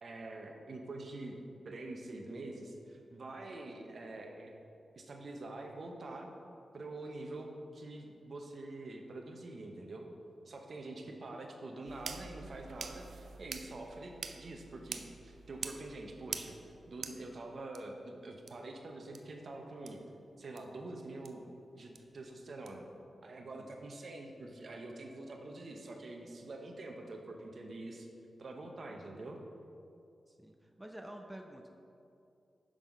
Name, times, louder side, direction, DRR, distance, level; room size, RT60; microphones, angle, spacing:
voice 1, 0.0-1.4 1.6-4.5 4.9-6.3 6.7-10.1 10.5-16.6 16.9-20.0 20.4-22.8 23.2-28.1 28.4-29.4, right 2 dB, 60° right, 2 dB, 0.9 m, -46 dB
sound 1, 11.9-17.8 18.5-18.6 19.1-19.2 19.9-20.0 20.6-20.7 21.3-21.4 22.0-22.1 22.7-22.8, right 5 dB, 90° right, 0.4 m, -45 dB
voice 2, 30.3-31.7, right 1 dB, 10° right, 3 dB, 0.6 m, -49 dB
6.4 x 5.7 x 5.2 m, 2.6 s
wide cardioid pair, 85°, 0 cm